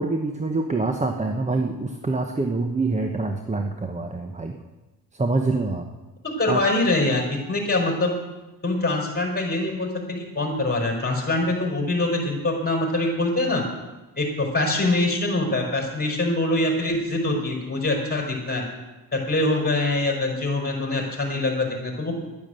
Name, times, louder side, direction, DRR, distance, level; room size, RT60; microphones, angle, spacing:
voice 1, 0.0-4.5 5.2-5.9 6.5-6.6, right 3 dB, 15° right, 4 dB, 0.9 m, -25 dB
voice 2, 6.2-8.1 8.6-13.6 14.2-18.6 19.1-22.3, left 2 dB, 20° left, 0 dB, 4.8 m, -24 dB
11.5 x 9.7 x 7.8 m, 1.1 s
cardioid pair, 100°, 42 cm